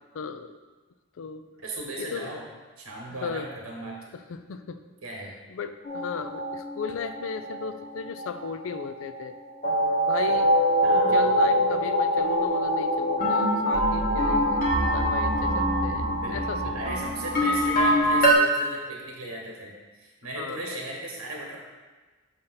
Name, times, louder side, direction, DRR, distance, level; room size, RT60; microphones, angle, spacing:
voice 1, 0.1-0.6 1.2-1.4 2.0-2.3 3.2-3.5 4.3-4.8 5.5-9.3 10.1-10.5 10.9-14.6 14.9-16.8 20.4-20.6, left 6 dB, 70° left, 10 dB, 0.4 m, -35 dB
voice 2, 1.6-2.4 2.8-4.0 5.0-5.3 10.8-11.6 15.9-21.6, right 1 dB, 85° right, -2 dB, 1.2 m, -37 dB
sound 1, 5.8-9.4 9.6-18.4, equal, 40° left, 1.0 m, -24 dB
6.5 x 2.8 x 5.5 m, 1.3 s
head